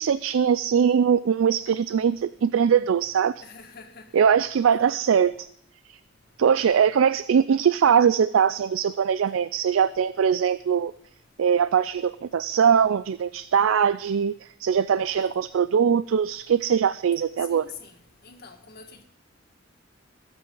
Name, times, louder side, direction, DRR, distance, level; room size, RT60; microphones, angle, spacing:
voice 1, 0.0-3.3 4.1-5.5 5.9-6.0 6.4-10.9 11.4-17.7, right 7 dB, 80° right, 16 dB, 0.4 m, -21 dB
voice 2, 3.4-4.0 17.5-17.9 18.2-19.0, left 5 dB, 55° left, 3 dB, 2.0 m, -45 dB
21.0 x 8.2 x 3.9 m, 0.67 s
head